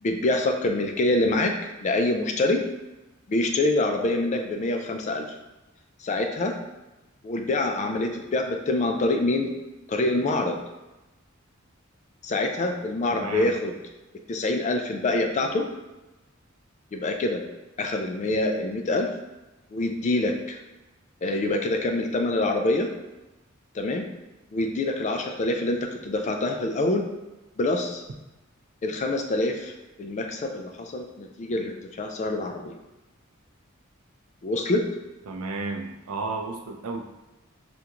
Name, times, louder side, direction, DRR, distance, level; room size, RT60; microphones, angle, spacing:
voice 1, 0.0-1.5 1.8-2.6 3.3-5.3 6.0-6.5 7.2-9.5 9.9-10.6 12.2-13.8 14.3-15.7 16.9-17.4 17.8-19.1 19.7-20.6 21.2-22.9 23.7-24.0 24.5-27.0 27.6-28.0 28.8-32.8 34.4-34.8, left 2 dB, 35° left, 4 dB, 0.3 m, -25 dB
voice 2, 13.1-13.5 35.3-37.0, right 3 dB, 80° right, 3 dB, 0.5 m, -32 dB
3.5 x 2.4 x 2.9 m, 1.1 s
head